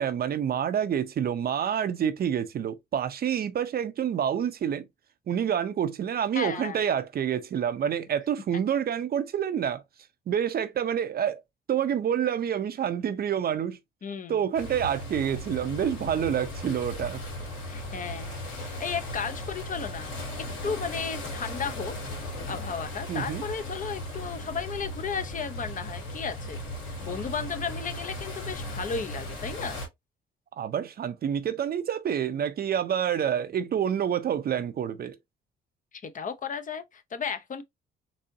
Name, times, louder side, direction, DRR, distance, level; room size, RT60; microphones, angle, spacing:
voice 1, 0.0-4.8 5.3-9.8 10.3-11.4 11.7-13.8 14.3-17.2 23.1-23.4 30.6-35.2, right 9 dB, 50° right, 0.6 m, -28 dB
voice 2, 6.3-6.8 14.0-14.4 17.6-20.1 20.6-22.0 22.5-26.6 27.0-29.8 36.0-37.6, left 6 dB, 40° left, 0.6 m, -34 dB
sound 1, 14.5-29.9, left 1 dB, 75° left, 2.4 m, -37 dB
4.1 x 2.7 x 2.5 m
cardioid pair, 90°, 20 cm